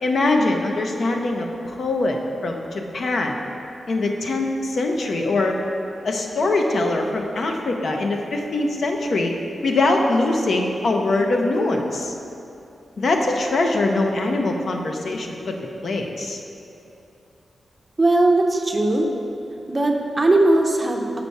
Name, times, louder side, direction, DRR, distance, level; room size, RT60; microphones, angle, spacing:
voice 1, 0.0-2.2 2.4-3.4 3.9-5.6 6.0-9.4 9.6-12.1 13.0-16.4, left 2 dB, 60° left, 2 dB, 0.6 m, -22 dB
voice 2, 18.0-19.1 19.7-21.2, right 2 dB, 20° right, 2 dB, 0.6 m, -19 dB
6.8 x 4.6 x 5.3 m, 2.8 s
wide cardioid pair, 140°, 0 cm